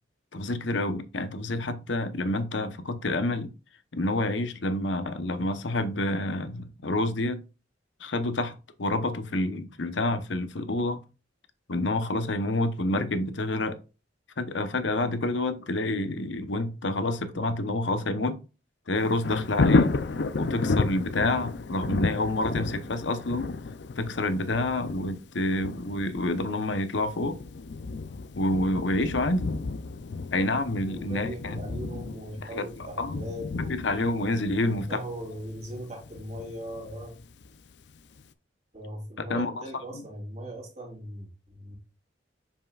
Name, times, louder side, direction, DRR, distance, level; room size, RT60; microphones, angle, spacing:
voice 1, 0.3-3.5 3.9-7.4 8.0-11.0 11.7-13.8 14.4-18.4 18.9-19.9 20.4-23.5 24.0-27.4 28.4-29.5 30.3-31.6 32.5-33.2 33.7-35.0 39.3-39.6 39.9-40.0, left 2 dB, 80° left, 0.9 m, -28 dB
Thunder, 18.9-37.7 38.2-38.3, left 3 dB, 65° left, 0.5 m, -32 dB
voice 2, 30.9-34.1 34.7-37.2 38.7-41.8, equal, 35° right, 2.8 m, -39 dB
7.2 x 5.5 x 2.4 m
head